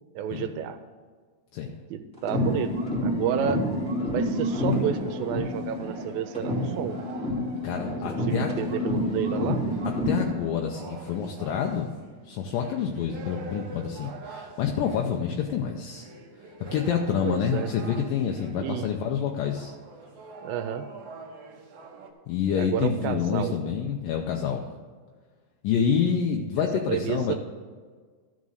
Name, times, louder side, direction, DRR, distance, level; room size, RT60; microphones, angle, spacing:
voice 1, 0.2-0.8 1.9-2.7 3.0-3.6 4.1-7.1 8.3-9.6 17.2-17.7 18.5-18.9 20.4-20.9 22.5-23.6 26.9-27.4, right 9 dB, 85° right, 9 dB, 2.4 m, -30 dB
sound 1, 2.2-6.1 6.3-10.3, left 1 dB, ahead, 2.2 m, -28 dB
sound 2, 4.3-7.8 8.8-18.7 19.4-22.1, right 3 dB, 60° right, 1.8 m, -45 dB
voice 2, 7.6-8.6 10.1-11.9 12.2-16.1 16.6-19.7 22.3-24.7 25.6-27.4, left 7 dB, 75° left, 2 dB, 2.3 m, -27 dB
13.5 x 5.2 x 6.4 m, 1.5 s
omnidirectional pair, 4.1 m